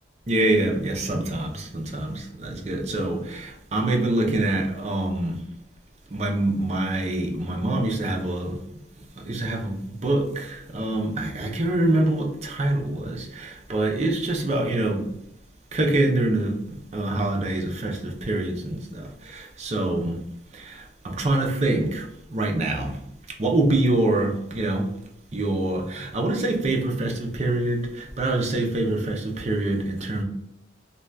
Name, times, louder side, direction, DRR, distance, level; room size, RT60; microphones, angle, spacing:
voice 1, 0.3-5.4 6.1-8.6 9.2-15.1 15.7-20.2 20.5-22.1 22.3-23.0 23.4-24.9 25.3-30.2, right 2 dB, 35° right, 2 dB, 0.5 m, -25 dB
2.6 x 2.3 x 3.2 m, 0.78 s
head